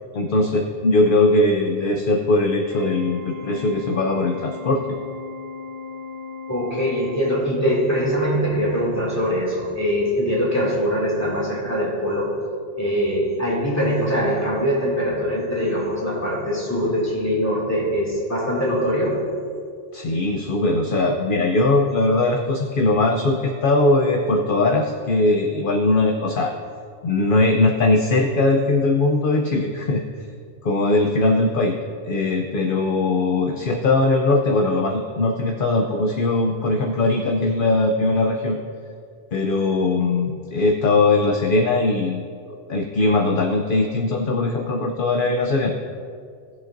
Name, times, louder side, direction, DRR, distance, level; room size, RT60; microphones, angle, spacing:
voice 1, 0.1-4.8 19.9-26.5 27.0-30.0 30.6-31.8 32.0-38.6 39.3-42.2 42.7-45.7, left 2 dB, 50° left, 2 dB, 0.8 m, -20 dB
Organ, 2.7-7.8, left 4 dB, 25° right, 0.5 m, -36 dB
voice 2, 6.5-12.4 12.8-19.3, equal, 15° left, -5 dB, 2.4 m, -22 dB
19.0 x 7.3 x 2.6 m, 2.3 s
omnidirectional pair, 1.2 m